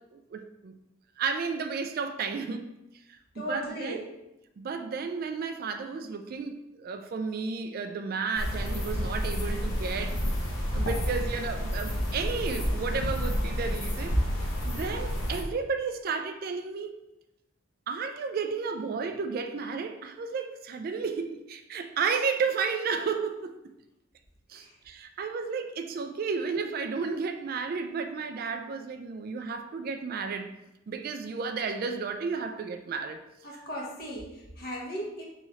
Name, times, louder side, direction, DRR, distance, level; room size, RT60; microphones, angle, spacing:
voice 1, 0.1-0.7 1.2-2.7 3.1-4.1 4.6-10.2 10.7-14.2 14.6-16.9 17.9-23.5 24.5-30.6 30.9-33.2 33.5-33.6, right 5 dB, 45° right, 7 dB, 0.3 m, -32 dB
voice 2, 3.4-4.0 33.4-34.3 34.6-35.3, equal, 50° left, -2 dB, 1.0 m, -36 dB
sound 1, 8.4-15.4, equal, 85° left, 0.9 m, -30 dB
3.6 x 3.1 x 4.1 m, 0.91 s
head